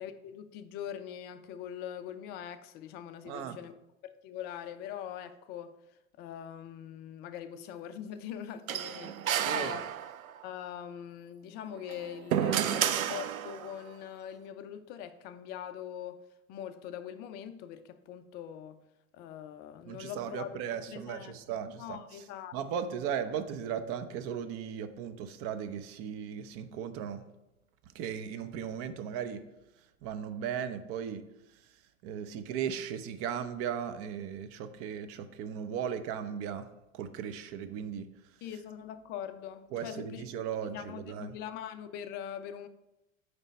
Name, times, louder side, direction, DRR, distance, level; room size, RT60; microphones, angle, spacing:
voice 1, 0.0-3.7 4.0-5.8 6.2-9.9 10.4-16.2 16.5-18.8 19.1-20.6 20.9-21.4 21.7-22.9 38.4-40.2 40.6-42.7, left 9 dB, 25° left, 0.4 m, -42 dB
voice 2, 3.2-3.6 9.4-9.8 19.9-22.0 22.5-27.2 27.9-29.4 30.0-31.2 32.0-36.7 36.9-38.1 39.7-41.3, right 8 dB, 35° right, 0.6 m, -37 dB
sound 1, 8.7-10.4 11.8-13.8, right 10 dB, 80° right, 0.5 m, -31 dB
8.9 x 3.3 x 5.2 m
figure-of-eight pair, 90°, 42 cm